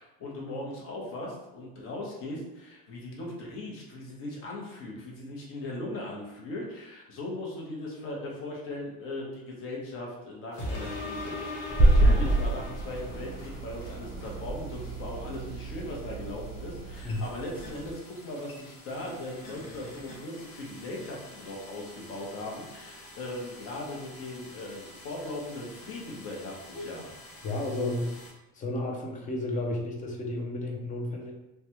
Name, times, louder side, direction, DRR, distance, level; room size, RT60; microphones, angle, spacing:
voice 1, 0.0-27.1, left 1 dB, 45° left, -2 dB, 0.9 m, -39 dB
sound 1, 10.5-28.3, left 1 dB, 90° left, 1.1 m, -50 dB
sound 2, 10.6-13.5 14.0-14.1, left 2 dB, 75° left, 1.1 m, -38 dB
sound 3, 11.7-17.9, right 1 dB, 20° right, 0.6 m, -27 dB
voice 2, 27.4-28.1 28.5-31.3, left 1 dB, 25° left, 0 dB, 0.5 m, -32 dB
3.3 x 2.3 x 2.9 m, 0.95 s
cardioid pair, 160°, 31 cm